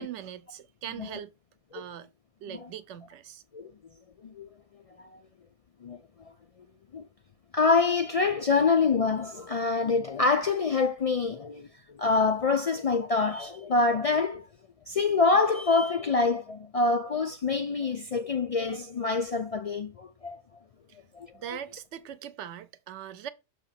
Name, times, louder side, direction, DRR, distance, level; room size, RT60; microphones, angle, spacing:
voice 1, 0.0-1.3 1.7-2.1 2.4-3.4 20.9-21.0 21.3-23.3, right 10 dB, 90° right, 0.9 m, -41 dB
voice 2, 7.5-14.5 14.9-20.4 21.1-21.3, left 4 dB, 55° left, 0.4 m, -26 dB
6.4 x 2.9 x 5.6 m
omnidirectional pair, 1.1 m